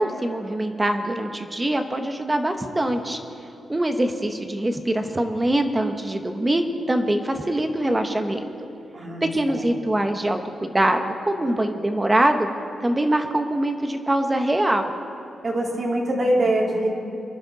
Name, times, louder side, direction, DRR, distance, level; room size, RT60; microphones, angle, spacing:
voice 1, 0.0-3.2 3.7-8.5 9.2-12.5 12.8-15.0, right 1 dB, 20° right, 6 dB, 1.0 m, -23 dB
voice 2, 8.9-9.6 15.4-16.9, right 1 dB, 50° right, -2 dB, 2.3 m, -23 dB
23.5 x 11.0 x 4.1 m, 2.7 s
cardioid pair, 100°, 0 cm